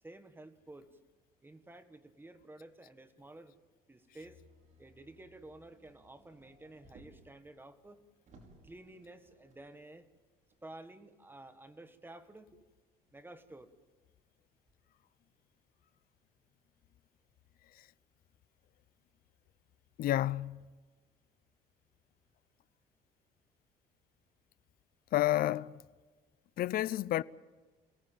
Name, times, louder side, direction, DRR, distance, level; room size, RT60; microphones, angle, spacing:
voice 1, 0.0-0.9 1.4-3.6 3.9-4.4 4.8-8.0 8.6-10.1 10.6-12.6 13.1-13.7, right 2 dB, 10° right, 1.7 m, -52 dB
Motor vehicle (road), 4.2-7.4 7.8-7.9 8.2-9.7 10.5-10.6, right 1 dB, 45° right, 5.6 m, -61 dB
voice 2, 20.0-20.6 25.1-25.8 26.6-27.2, left 14 dB, 60° left, 0.6 m, -30 dB
27.5 x 18.0 x 7.4 m
cardioid pair, 110°, 17 cm